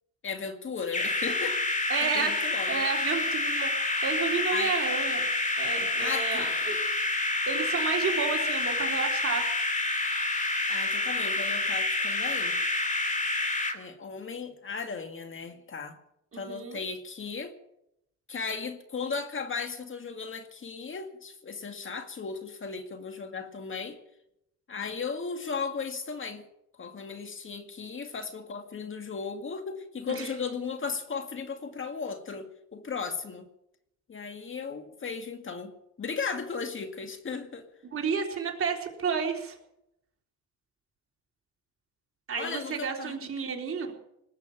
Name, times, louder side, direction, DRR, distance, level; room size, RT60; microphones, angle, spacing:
voice 1, 0.2-1.6 2.0-2.8 4.5-4.8 6.0-6.6 10.7-12.6 13.7-16.0 16.4-17.5 18.3-24.0 24.7-26.4 26.8-33.5 34.1-37.7 42.4-43.2, left 5 dB, 40° left, 7 dB, 2.1 m, -36 dB
sound 1, 0.9-13.7, left 2 dB, 25° left, 2.6 m, -28 dB
voice 2, 1.9-2.3 2.7-3.7 4.0-5.3 5.6-6.8 7.5-9.5 16.3-16.8 30.1-30.3 37.9-39.6 42.3-43.9, right 6 dB, 45° right, 1 dB, 3.7 m, -31 dB
19.5 x 8.2 x 9.0 m, 0.81 s
cardioid pair, 90°, 30 cm